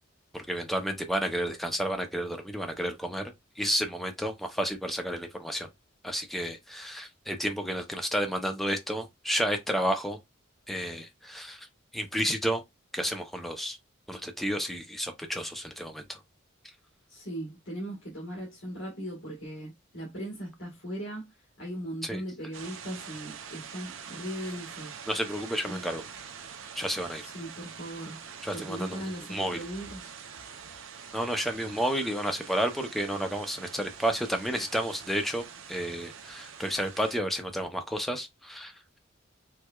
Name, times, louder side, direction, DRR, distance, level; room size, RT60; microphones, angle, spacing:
voice 1, 0.3-5.7 6.0-10.2 10.7-11.7 11.9-12.6 12.9-13.8 14.1-16.2 22.0-22.2 25.1-26.0 26.8-27.3 28.4-29.6 31.1-39.0, equal, ahead, 0.5 m, -31 dB
voice 2, 17.1-25.0 25.6-25.8 27.2-28.3 28.5-30.2, equal, 65° left, 1.3 m, -39 dB
sound 1, 22.5-37.2, right 7 dB, 75° right, 0.6 m, -45 dB
4.5 x 2.2 x 2.2 m
head